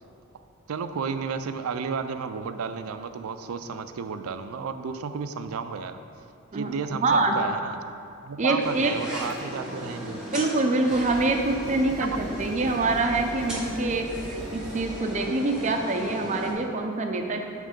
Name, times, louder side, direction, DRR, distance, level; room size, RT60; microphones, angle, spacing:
voice 1, 0.7-6.0 6.5-7.8 8.3-10.2 12.0-12.2, right 5 dB, 85° right, 10 dB, 0.4 m, -32 dB
voice 2, 7.0-7.4 8.4-8.9 10.1-14.1 14.5-17.4, right 2 dB, 35° right, 3 dB, 0.5 m, -25 dB
sound 1, 8.6-16.5, equal, 5° right, 1.2 m, -37 dB
Heavy Mounted Assault Plasma Gun, 9.1-9.8 10.5-10.6 10.9-15.1, left 1 dB, 75° left, 0.8 m, -42 dB
8.9 x 3.2 x 5.1 m, 2.5 s
head